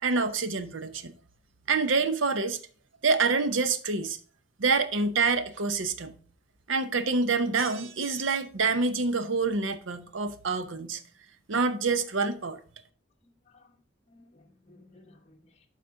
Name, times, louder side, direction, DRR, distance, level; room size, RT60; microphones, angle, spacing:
voice 1, 0.0-1.1 1.7-2.6 3.0-4.2 4.6-6.1 6.7-11.0 11.5-12.6, right 4 dB, 90° right, 0.8 m, -27 dB
voice 2, 13.2-13.7 14.1-15.6, left 2 dB, 35° left, 1.1 m, -58 dB
12.0 x 4.2 x 3.7 m
head